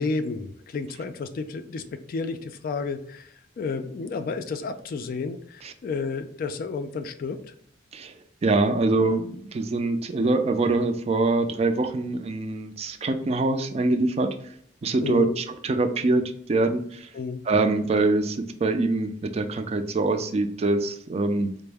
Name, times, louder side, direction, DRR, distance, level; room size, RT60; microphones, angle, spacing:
voice 1, 0.0-7.4 15.0-15.4 17.1-17.4, left 4 dB, 50° left, 8 dB, 0.3 m, -31 dB
voice 2, 8.4-14.3 14.8-17.1 17.5-21.5, right 2 dB, 35° right, 8 dB, 0.4 m, -24 dB
4.4 x 2.0 x 3.3 m, 0.67 s
head